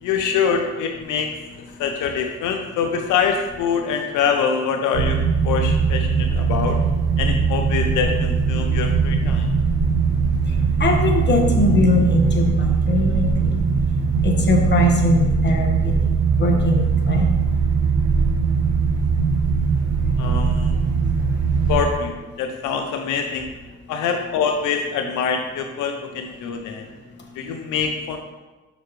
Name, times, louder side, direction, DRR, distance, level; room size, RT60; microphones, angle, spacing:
voice 1, 0.0-5.2 5.4-6.8 7.2-9.5 20.2-20.8 21.7-23.5 23.9-26.8 27.4-28.2, left 6 dB, 85° left, 4 dB, 0.6 m, -24 dB
sound 1, 4.9-21.8, right 5 dB, 75° right, 0.8 m, -20 dB
voice 2, 10.8-13.6 14.2-15.9 16.4-17.3, left 2 dB, 35° left, 1 dB, 1.3 m, -20 dB
6.9 x 5.6 x 3.1 m, 1.2 s
cardioid pair, 90°, 30 cm